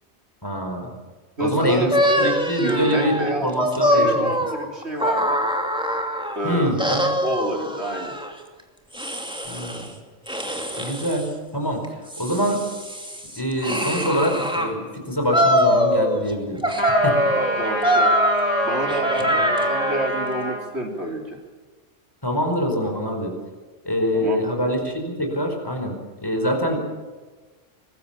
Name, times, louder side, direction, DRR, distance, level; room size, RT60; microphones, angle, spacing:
voice 1, 0.4-0.9 1.4-1.9 2.2-4.5 6.4-7.1 9.4-9.9 10.8-11.8 12.2-12.6 13.3-17.2 19.2-19.3 22.2-23.3 23.8-26.9, equal, 20° left, 2 dB, 4.8 m, -24 dB
voice 2, 1.4-3.5 3.9-5.4 6.3-6.8 7.2-8.1 17.3-18.1 18.6-21.4 24.1-24.4, right 1 dB, 60° right, 1 dB, 3.8 m, -28 dB
sound 1, 1.9-6.4 6.8-8.3 8.9-9.9 10.3-11.3 11.8-14.7 15.3-16.3 16.6-20.1, equal, 5° right, 2.6 m, -23 dB
sound 2, 16.8-20.6, equal, 20° right, 4.6 m, -27 dB
24.0 x 20.0 x 7.4 m, 1.3 s
omnidirectional pair, 1.3 m